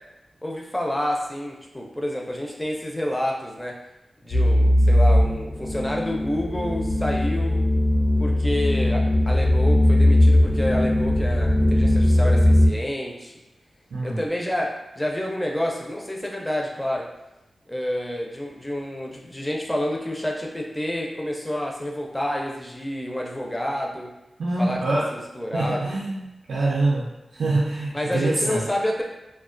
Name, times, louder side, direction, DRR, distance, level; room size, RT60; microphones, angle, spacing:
voice 1, 0.4-3.8 4.2-7.6 8.2-13.3 14.0-17.1 17.7-24.1 24.6-25.9 27.9-29.0, left 1 dB, 10° left, -1 dB, 0.4 m, -29 dB
sound 1, 4.3-12.7, left 1 dB, 70° left, 0.6 m, -19 dB
voice 2, 24.4-25.1 25.5-28.6, right 2 dB, 85° right, -5 dB, 0.4 m, -25 dB
2.3 x 2.1 x 2.4 m, 0.96 s
wide cardioid pair, 115°, 0 cm